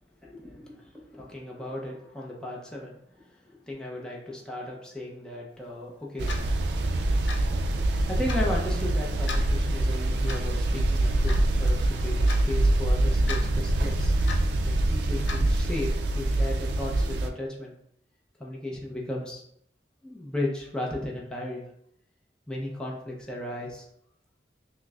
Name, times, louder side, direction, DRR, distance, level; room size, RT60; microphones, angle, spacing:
voice 1, 0.2-6.5 8.1-11.3 11.6-14.1 14.6-17.8 18.4-19.4 20.0-21.6 22.5-23.9, left 1 dB, 5° left, -4 dB, 0.6 m, -35 dB
sound 1, 6.2-17.3, right 1 dB, 75° right, 0.4 m, -25 dB
Clock, 6.3-6.5 7.3-7.5 8.3-8.4 9.3-9.5 10.3-10.5 11.3-11.4 12.3-12.4 13.3-13.4 14.3-14.5 15.3-15.4, left 4 dB, 85° left, 0.6 m, -36 dB
5.9 x 2.0 x 2.4 m, 0.72 s
head